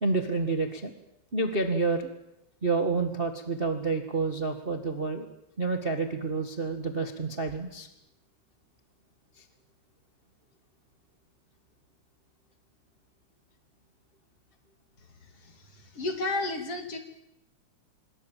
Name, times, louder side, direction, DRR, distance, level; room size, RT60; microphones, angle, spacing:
voice 1, 0.0-0.9 1.3-2.1 2.6-5.2 5.6-7.9, right 3 dB, 25° right, 6 dB, 1.3 m, -29 dB
voice 2, 15.4-17.0, left 2 dB, 50° left, 6 dB, 3.6 m, -32 dB
27.0 x 21.0 x 7.5 m, 0.86 s
omnidirectional pair, 3.5 m